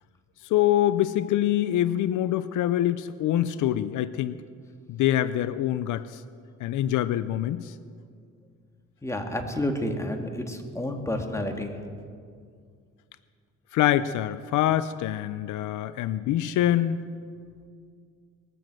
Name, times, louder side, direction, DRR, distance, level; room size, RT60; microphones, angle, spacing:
voice 1, 0.5-4.4 4.9-6.2 6.6-7.7 13.7-17.1, left 12 dB, 80° left, 14 dB, 0.6 m, -25 dB
voice 2, 9.0-11.7, left 1 dB, 10° left, 3 dB, 1.9 m, -30 dB
20.5 x 7.8 x 7.6 m, 2.2 s
cardioid pair, 90°, 30 cm